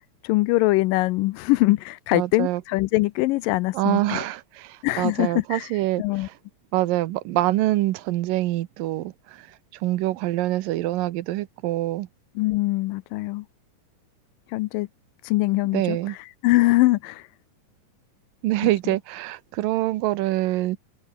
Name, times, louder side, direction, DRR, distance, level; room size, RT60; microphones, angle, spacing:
voice 1, 0.2-4.3 4.8-5.7 6.0-6.3 12.4-13.5 14.5-14.9 15.2-16.2 16.4-17.3, left 20 dB, 85° left, 2.3 m, -22 dB
voice 2, 2.1-2.6 3.7-6.3 6.7-9.5 9.8-12.1 15.7-16.2 18.4-20.8, right 16 dB, 85° right, 2.6 m, -25 dB
omnidirectional pair, 4.0 m